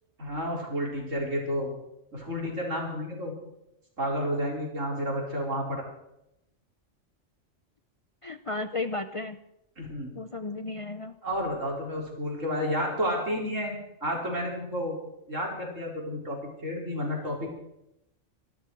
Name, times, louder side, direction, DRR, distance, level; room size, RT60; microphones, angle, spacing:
voice 1, 0.2-1.7 2.1-3.3 4.0-5.8 9.8-10.2 11.2-15.0 15.3-16.4 16.6-17.5, equal, 85° right, -1 dB, 4.8 m, -31 dB
voice 2, 8.2-9.4 10.1-11.2, left 3 dB, 35° left, 9 dB, 0.5 m, -34 dB
24.5 x 12.5 x 4.7 m, 0.84 s
omnidirectional pair, 1.3 m